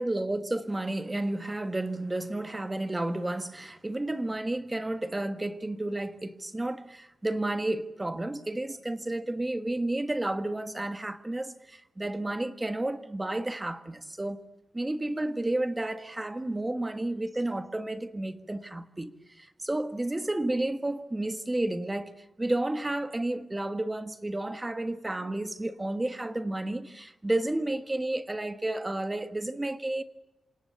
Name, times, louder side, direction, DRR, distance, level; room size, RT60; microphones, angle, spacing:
voice 1, 0.0-14.4 14.7-22.1 22.4-30.0, right 1 dB, 15° right, 1.4 m, -31 dB
28.0 x 27.0 x 6.9 m
wide cardioid pair, 180°, 0 cm